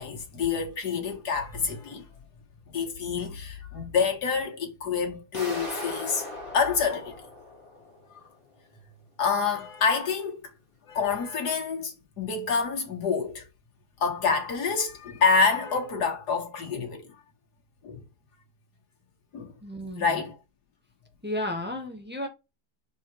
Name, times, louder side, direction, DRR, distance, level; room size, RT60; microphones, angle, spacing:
voice 1, 0.0-2.1 2.7-6.2 6.5-7.2 9.2-10.5 10.9-13.5 14.0-17.1 17.8-18.0 19.3-19.5 20.0-20.4, left 5 dB, 85° left, 2.2 m, -27 dB
sound 1, 5.3-8.2, left 1 dB, 20° left, 2.6 m, -38 dB
voice 2, 19.6-20.1 21.2-22.3, left 1 dB, 5° right, 1.3 m, -33 dB
4.9 x 4.8 x 4.7 m
omnidirectional pair, 1.7 m